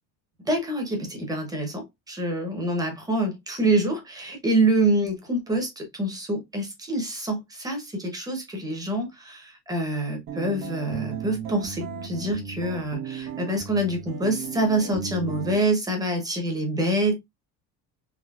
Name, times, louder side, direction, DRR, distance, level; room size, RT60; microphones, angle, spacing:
voice 1, 0.4-17.2, right 1 dB, 10° right, 0.9 m, -26 dB
sound 1, 10.3-15.6, right 6 dB, 80° right, 1.0 m, -35 dB
3.7 x 3.1 x 2.4 m
cardioid pair, 175°, 34 cm